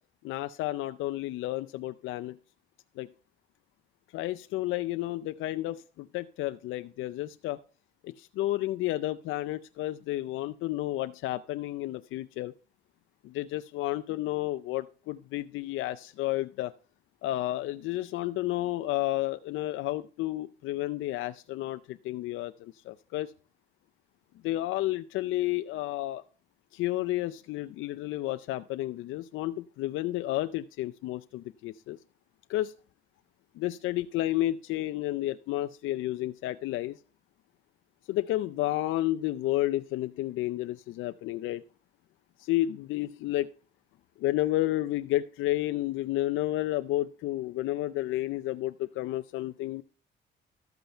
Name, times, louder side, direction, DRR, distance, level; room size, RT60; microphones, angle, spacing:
voice 1, 0.2-2.4 3.0-3.1 4.1-7.6 8.0-12.5 13.2-16.7 17.2-23.3 24.4-26.2 26.7-32.0 32.5-32.7 33.6-37.0 38.1-41.6 42.4-43.5 44.2-49.8, left 15 dB, 90° left, 0.5 m, -31 dB
13.0 x 7.9 x 4.4 m
cardioid pair, 90°, 20 cm